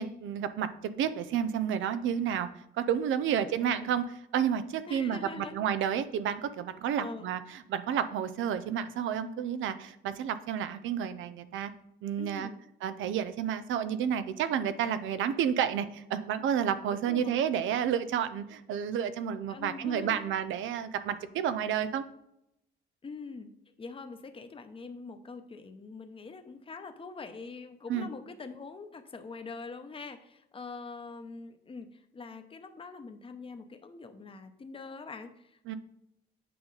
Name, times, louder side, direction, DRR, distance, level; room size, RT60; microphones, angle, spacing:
voice 1, 0.0-2.5 2.7-11.7 12.0-12.5 12.8-22.0 27.9-28.1 35.7-35.8, right 8 dB, 80° right, 13 dB, 0.6 m, -31 dB
voice 2, 3.3-3.7 4.9-5.5 7.0-7.3 12.2-12.6 16.9-17.4 19.5-20.2 23.0-23.5 23.8-35.8, left 4 dB, 25° left, 7 dB, 0.8 m, -44 dB
8.5 x 5.2 x 4.0 m, 0.80 s
cardioid pair, 90°, 20 cm